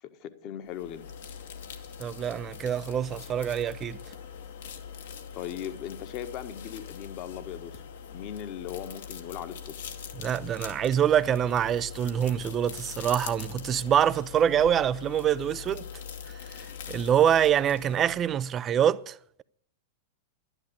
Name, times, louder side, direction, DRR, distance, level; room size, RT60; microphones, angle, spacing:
voice 1, 0.0-1.0 5.3-9.8, left 10 dB, 45° left, 1.5 m, -39 dB
sound 1, 0.7-18.5, left 7 dB, 70° left, 1.9 m, -42 dB
voice 2, 2.0-4.0 10.2-15.8 16.3-19.4, right 9 dB, 30° right, 0.6 m, -25 dB
11.5 x 11.0 x 8.1 m
hypercardioid pair, 105°, 0 cm